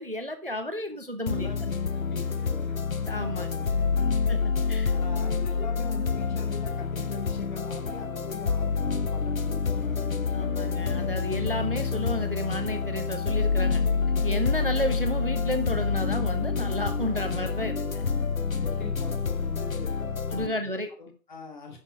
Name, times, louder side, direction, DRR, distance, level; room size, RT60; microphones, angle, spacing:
voice 1, 0.0-1.5 3.1-3.5 4.3-4.4 4.7-4.9 10.3-13.8 14.2-18.0 20.3-20.9, equal, 35° right, 7 dB, 0.6 m, -32 dB
voice 2, 1.2-2.8 3.1-3.7 4.0-4.1 4.9-10.1 18.5-20.6 21.0-21.8, left 3 dB, 25° left, 1 dB, 2.3 m, -43 dB
sound 1, 1.3-20.5, left 5 dB, 55° left, 0.9 m, -28 dB
11.0 x 5.9 x 5.1 m, 0.39 s
figure-of-eight pair, 160°, 50 cm